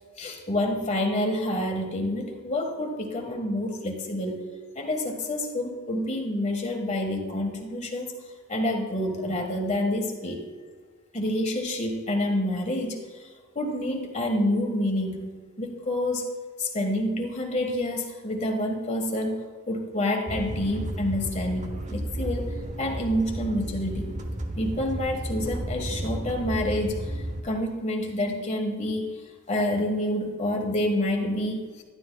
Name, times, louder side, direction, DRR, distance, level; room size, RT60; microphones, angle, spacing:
voice 1, 0.2-4.5 4.7-10.4 11.1-16.3 16.6-24.2 24.6-31.8, left 1 dB, 35° left, 2 dB, 1.6 m, -28 dB
sound 1, 20.3-27.4, right 1 dB, 35° right, 0.9 m, -33 dB
12.0 x 11.5 x 2.3 m, 1.5 s
head